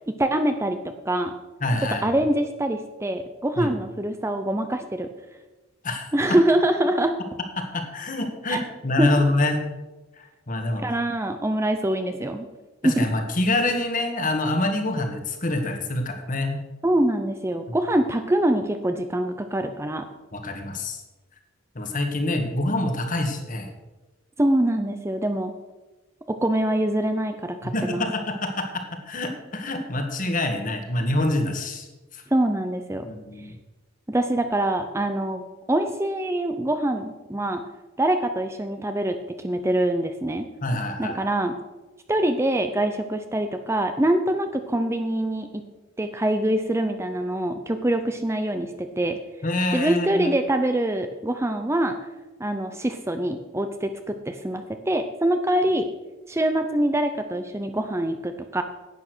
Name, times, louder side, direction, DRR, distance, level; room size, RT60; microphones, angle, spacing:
voice 1, 0.2-1.3 1.8-5.1 6.1-7.2 8.5-8.6 9.0-9.1 10.8-12.5 12.8-13.1 16.8-20.1 24.4-25.5 26.3-28.0 32.3-33.1 34.1-37.6 38.0-40.5 41.0-41.5 42.1-45.6 46.0-49.2 49.7-52.0 52.4-55.9 56.3-58.6, right 1 dB, 15° right, 7 dB, 0.6 m, -24 dB
voice 2, 1.6-2.1 3.6-3.7 5.8-6.4 7.6-9.6 10.2-11.0 12.8-16.6 20.3-21.0 21.7-23.7 27.6-31.9 32.1-32.2 33.0-33.5 40.6-41.2 49.4-50.3, left 2 dB, 40° left, 5 dB, 1.6 m, -26 dB
11.0 x 8.7 x 6.1 m, 1.1 s
head